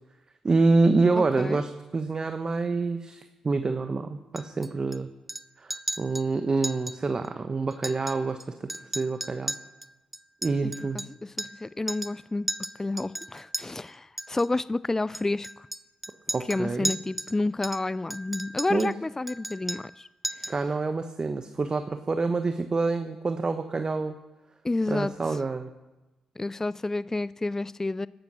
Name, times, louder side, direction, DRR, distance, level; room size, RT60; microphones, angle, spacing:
voice 1, 0.4-5.1 5.6-5.7 6.0-8.7 8.9-9.6 10.4-11.0 16.3-16.9 18.7-18.9 20.5-24.1 24.9-25.7, right 3 dB, 40° right, 8 dB, 1.1 m, -27 dB
voice 2, 1.1-1.6 10.6-12.5 12.8-15.7 16.5-20.1 20.4-20.5 24.6-25.4 26.4-28.1, left 2 dB, 20° left, 19 dB, 0.4 m, -30 dB
Chink clink, 4.4-5.0 5.3-5.4 5.7-6.3 6.6-7.0 7.2-7.3 7.7-8.4 8.7-11.6 11.9-12.2 12.5-13.6 14.2-14.5 15.1-17.3 17.6-18.9 19.3-20.0 20.2-20.6, right 1 dB, 10° right, 0.8 m, -35 dB
16.5 x 12.5 x 6.3 m, 1.1 s
hypercardioid pair, 40°, 2 cm